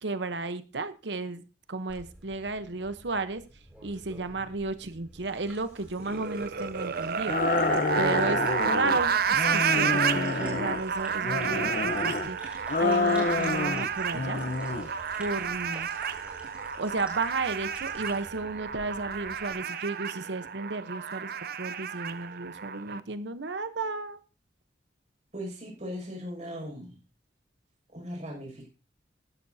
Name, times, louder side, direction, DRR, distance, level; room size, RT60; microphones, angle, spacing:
voice 1, 0.0-1.4 1.7-3.4 3.8-7.7 8.0-14.4 15.2-15.9 16.8-21.3 21.6-24.2, right 3 dB, 70° right, 11 dB, 0.9 m, -33 dB
sound 1, 1.9-19.5, right 1 dB, 5° right, 6.7 m, -49 dB
sound 2, 6.0-23.0, right 7 dB, 55° right, 0.6 m, -31 dB
sound 3, 7.3-9.0 9.4-10.8 11.2-12.3 12.7-13.9 14.1-14.9, left 3 dB, 50° left, 0.8 m, -28 dB
voice 2, 25.3-27.0 27.9-28.7, equal, 40° right, -1 dB, 6.4 m, -38 dB
15.0 x 11.5 x 2.8 m, 0.29 s
head